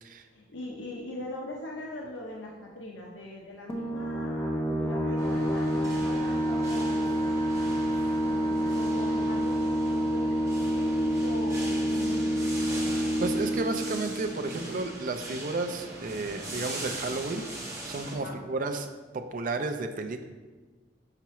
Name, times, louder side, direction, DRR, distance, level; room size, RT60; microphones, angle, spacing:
voice 1, 0.3-7.4 8.2-12.7 18.1-18.4, left 1 dB, 90° left, -1 dB, 0.7 m, -41 dB
sound 1, 3.7-15.0, equal, 15° left, 0.6 m, -28 dB
sound 2, 5.2-18.2, right 1 dB, 15° right, 1.3 m, -41 dB
voice 2, 12.9-20.3, right 3 dB, 50° right, 7 dB, 0.4 m, -33 dB
5.8 x 5.6 x 3.0 m, 1.3 s
head